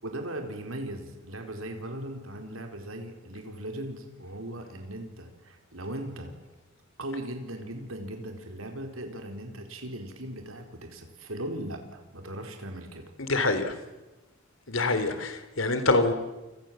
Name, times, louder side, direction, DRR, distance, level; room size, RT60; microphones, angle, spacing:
voice 1, 0.0-6.3 7.0-13.1, right 1 dB, 80° right, 4 dB, 4.5 m, -38 dB
voice 2, 13.2-13.7 14.7-16.1, left 2 dB, 70° left, 10 dB, 3.4 m, -25 dB
29.0 x 25.5 x 7.7 m, 1.1 s
head